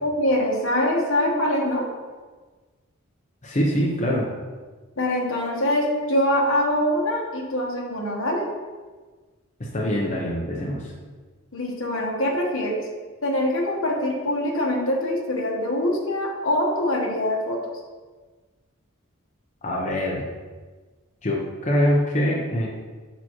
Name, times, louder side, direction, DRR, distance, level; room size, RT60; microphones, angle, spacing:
voice 1, 0.0-1.8 5.0-8.5 11.5-12.8 13.2-17.6, left 1 dB, 70° left, -1 dB, 1.2 m, -24 dB
voice 2, 3.4-4.3 9.6-10.9 19.6-20.2 21.2-22.7, equal, 35° left, -3 dB, 0.7 m, -24 dB
6.8 x 5.9 x 3.0 m, 1.4 s
head